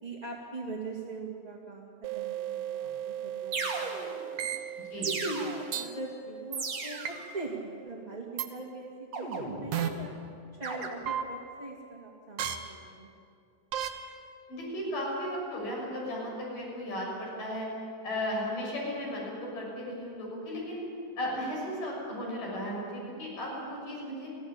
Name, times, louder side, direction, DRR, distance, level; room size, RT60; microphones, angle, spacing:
voice 1, 0.0-4.5 5.2-10.1 10.6-13.1, right 2 dB, 20° right, -3 dB, 1.0 m, -41 dB
sound 1, 2.0-7.4, right 11 dB, 90° right, 2.8 m, -39 dB
sound 2, 2.8-2.9 3.5-4.3 5.0-5.9 6.5-7.3 9.1-9.9 10.6-10.9, right 4 dB, 45° right, 3.0 m, -36 dB
sound 3, 4.4-4.6 5.7-5.9 7.1-7.2 8.4-8.5 9.7-9.9 11.1-11.2 12.4-12.6 13.7-13.9, right 10 dB, 65° right, 2.0 m, -31 dB
voice 2, 14.5-17.7 18.0-20.8 21.2-24.3, left 1 dB, 50° left, -3 dB, 8.0 m, -35 dB
22.5 x 16.0 x 8.9 m, 2.4 s
omnidirectional pair, 4.8 m